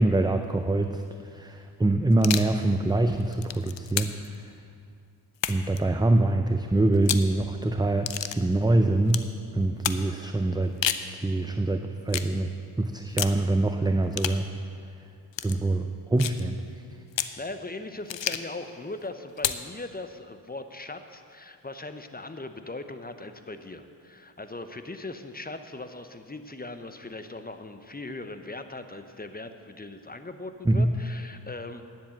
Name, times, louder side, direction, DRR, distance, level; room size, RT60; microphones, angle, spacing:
voice 1, 0.0-4.4 5.5-9.2 9.5-10.7 11.1-14.5 15.4-16.6 30.7-30.9, right 2 dB, 10° right, 6 dB, 0.4 m, -24 dB
sound 1, 2.1-2.6 3.2-4.3 5.4-5.8 6.9-7.3 8.1-8.4 9.1-9.3 9.8-10.0 10.6-11.1 12.1-12.3 13.2-13.4 14.1-14.4 15.3-15.6 16.2-16.4 17.1-17.4 18.1-18.5 19.4-19.7, left 10 dB, 65° left, 0.6 m, -30 dB
voice 2, 17.4-31.8, left 2 dB, 20° left, 9 dB, 0.8 m, -39 dB
10.5 x 7.5 x 7.7 m, 2.4 s
cardioid pair, 55°, 47 cm